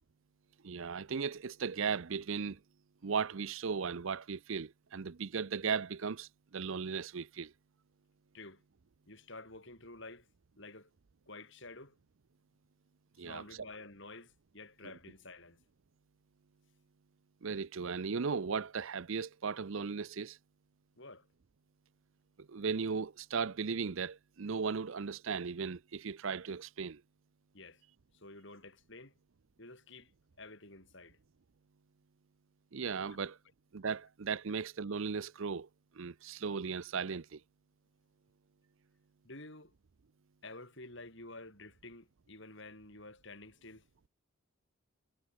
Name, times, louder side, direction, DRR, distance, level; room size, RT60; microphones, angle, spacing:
voice 1, 0.6-2.6 3.0-7.5 13.2-13.4 17.4-20.4 22.4-27.0 32.7-33.4 33.7-35.7 36.0-37.4, right 5 dB, 60° right, 0.6 m, -36 dB
voice 2, 9.1-10.3 10.6-10.9 11.3-12.0 13.2-15.6 21.0-21.3 27.5-27.8 28.1-29.1 29.6-30.1 30.4-31.2 33.1-33.2 39.2-39.7 40.4-43.8, left 2 dB, 55° left, 7.3 m, -50 dB
head